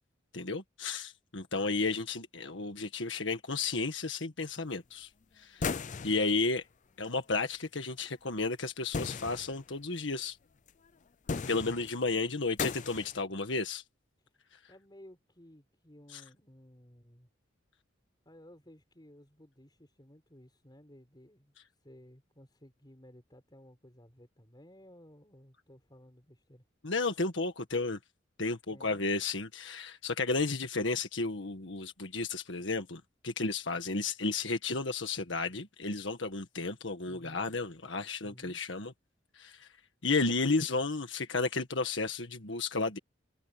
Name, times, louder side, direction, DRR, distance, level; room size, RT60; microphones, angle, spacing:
voice 1, 0.3-5.1 5.4-5.7 6.0-6.6 7.0-10.4 11.5-13.8 16.1-16.2 26.8-28.0 28.4-38.9 39.4-39.7 40.0-43.0, left 3 dB, 70° left, 1.7 m, -33 dB
sound 1, 5.6-6.3 8.9-9.6 10.7-10.8 11.3-12.0 12.6-13.2, left 5 dB, 40° left, 0.5 m, -36 dB
voice 2, 14.7-17.3 18.2-21.5 21.8-26.6 28.7-29.1 37.0-37.5 38.2-38.6, equal, 20° left, 6.1 m, -56 dB
head